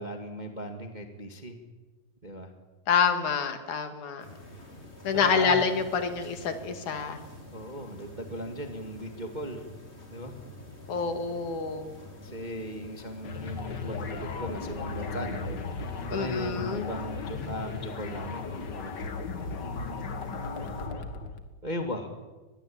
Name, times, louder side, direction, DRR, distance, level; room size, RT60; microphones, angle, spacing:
voice 1, 0.0-1.6 2.2-2.5 5.1-5.7 7.5-9.6 10.1-10.4 12.2-18.5 18.7-19.0 21.6-22.1, equal, 20° right, 5 dB, 1.6 m, -37 dB
voice 2, 2.9-4.2 5.0-7.2 10.9-11.9 16.1-16.8, left 6 dB, 65° left, 8 dB, 3.3 m, -27 dB
sound 1, 4.2-20.9, left 1 dB, 20° left, 3.9 m, -47 dB
sound 2, 13.2-21.5, left 4 dB, 40° left, 1.7 m, -36 dB
24.0 x 20.5 x 8.8 m, 1.2 s
omnidirectional pair, 3.9 m